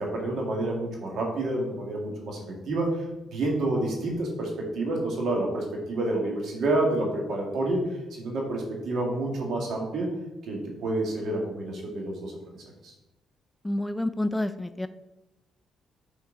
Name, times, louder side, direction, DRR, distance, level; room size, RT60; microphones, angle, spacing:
voice 1, 0.0-3.0 3.3-7.8 8.1-10.1 10.4-12.3 12.8-12.9, right 2 dB, 70° right, 0 dB, 1.8 m, -28 dB
voice 2, 13.6-14.9, left 1 dB, 10° left, 11 dB, 0.3 m, -28 dB
7.0 x 4.5 x 3.8 m, 0.98 s
cardioid pair, 90°, 0 cm